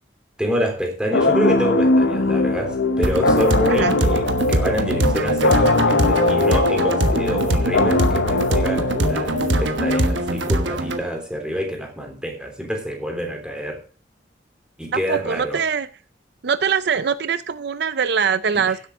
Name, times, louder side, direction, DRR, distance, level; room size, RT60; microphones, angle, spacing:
voice 1, 0.4-13.8 14.8-15.6, equal, 5° right, 2 dB, 3.2 m, -27 dB
sound 1, 1.1-10.6, left 2 dB, 85° left, 1.0 m, -21 dB
sound 2, 3.0-11.0, right 1 dB, 80° right, 1.3 m, -23 dB
voice 2, 14.9-15.9 16.4-18.8, right 6 dB, 60° right, 14 dB, 0.5 m, -22 dB
16.0 x 8.2 x 3.6 m, 0.38 s
head